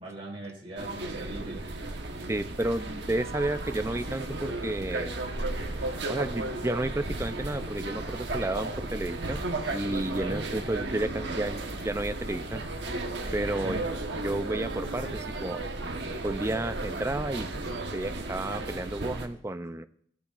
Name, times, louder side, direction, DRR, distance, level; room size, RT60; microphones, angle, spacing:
voice 1, 0.0-1.7 10.2-10.5 13.6-13.8, right 1 dB, 30° right, -2 dB, 3.0 m, -40 dB
sound 1, 0.8-19.3, right 2 dB, 70° right, 1.2 m, -35 dB
voice 2, 2.3-5.2 6.1-12.6 13.3-13.9 14.1-15.6 16.2-17.5 17.9-19.9, right 2 dB, 15° right, 11 dB, 0.5 m, -32 dB
sound 2, 2.7-14.6, left 2 dB, 60° left, 4.7 m, -50 dB
sound 3, 5.2-18.1, equal, 90° right, 2.7 m, -45 dB
17.0 x 8.3 x 2.5 m, 0.65 s
head